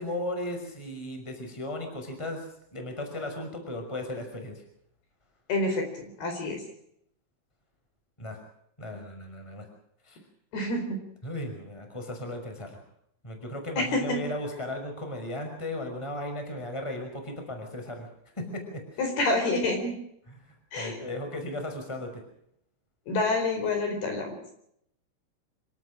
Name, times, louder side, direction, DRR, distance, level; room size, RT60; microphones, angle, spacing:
voice 1, 0.0-2.5 2.7-4.6 8.2-8.4 8.8-9.7 10.0-10.2 11.2-12.8 13.2-18.1 18.4-18.6 20.3-20.4 20.8-22.2, left 1 dB, 5° left, 4 dB, 5.3 m, -36 dB
voice 2, 5.5-6.6 10.5-11.0 13.8-14.2 19.0-19.9 20.7-21.0 23.1-24.4, left 2 dB, 55° left, 4 dB, 6.2 m, -28 dB
26.5 x 18.0 x 6.3 m, 0.72 s
omnidirectional pair, 5.4 m